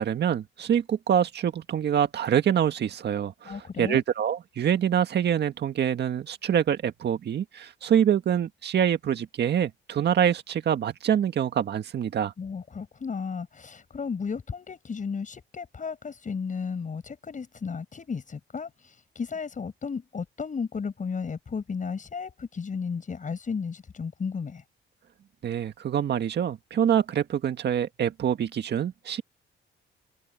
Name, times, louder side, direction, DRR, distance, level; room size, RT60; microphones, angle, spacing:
voice 1, 0.0-12.3 25.4-29.2, right 9 dB, 60° right, 1.8 m, -25 dB
voice 2, 3.4-4.0 12.4-18.7 19.1-24.6, left 5 dB, 40° left, 6.8 m, -34 dB
cardioid pair, 90°, 20 cm